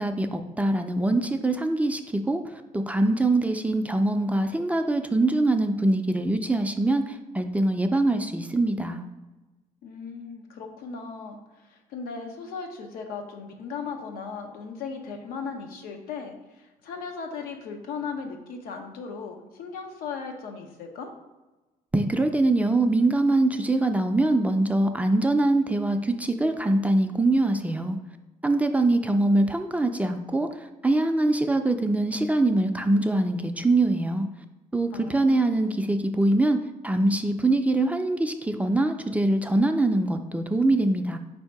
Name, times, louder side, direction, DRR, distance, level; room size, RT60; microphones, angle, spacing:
voice 1, 0.0-2.0 2.3-2.4 2.7-9.0 21.9-28.0 28.4-34.3 34.7-36.6 36.8-41.2, right 2 dB, 10° right, 6 dB, 0.3 m, -23 dB
voice 2, 9.8-21.1 34.9-35.5, left 5 dB, 90° left, 4 dB, 0.7 m, -37 dB
4.3 x 2.7 x 4.6 m, 1.1 s
cardioid pair, 95°, 15 cm